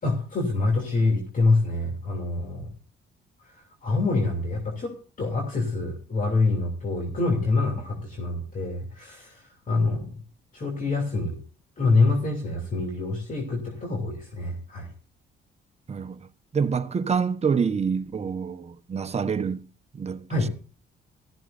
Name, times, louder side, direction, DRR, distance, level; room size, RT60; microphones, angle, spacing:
voice 1, 0.0-2.7 3.4-10.2 10.5-11.4 11.8-14.9 20.3-20.5, left 3 dB, 40° left, 2.9 m, -26 dB
voice 2, 15.9-16.3 16.5-19.6 19.9-20.3, right 6 dB, 35° right, 1.0 m, -26 dB
14.5 x 14.0 x 2.6 m
cardioid pair, 90°, 20 cm